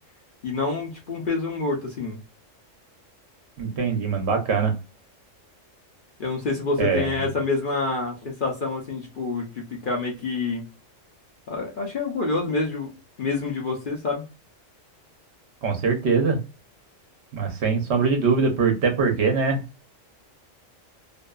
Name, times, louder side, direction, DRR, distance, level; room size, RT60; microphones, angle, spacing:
voice 1, 0.4-2.2 6.2-10.6 11.5-12.9 13.2-14.2, left 3 dB, 55° left, 0 dB, 0.6 m, -27 dB
voice 2, 3.6-4.7 6.8-7.1 15.6-16.4 17.3-19.6, right 5 dB, 60° right, 4 dB, 0.9 m, -22 dB
2.7 x 2.2 x 2.2 m, 0.29 s
omnidirectional pair, 1.4 m